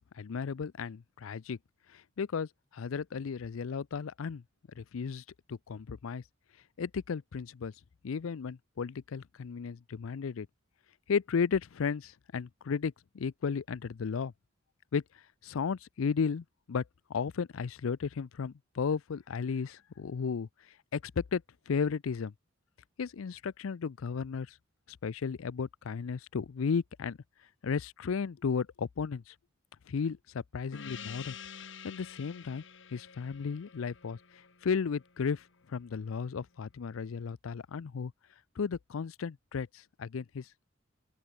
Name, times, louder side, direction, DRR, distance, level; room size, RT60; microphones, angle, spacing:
voice 1, 0.1-1.6 1.9-4.4 4.8-5.2 5.5-6.2 6.8-7.7 8.0-10.5 11.1-14.3 14.9-15.0 15.4-16.8 17.1-20.5 20.9-22.3 23.0-24.6 24.9-27.2 27.6-29.3 29.9-32.6 32.9-38.1 38.6-40.6, left 5 dB, 75° left, 0.5 m, -34 dB
Gong, 30.7-35.7, left 7 dB, 60° left, 2.1 m, -48 dB
open air
head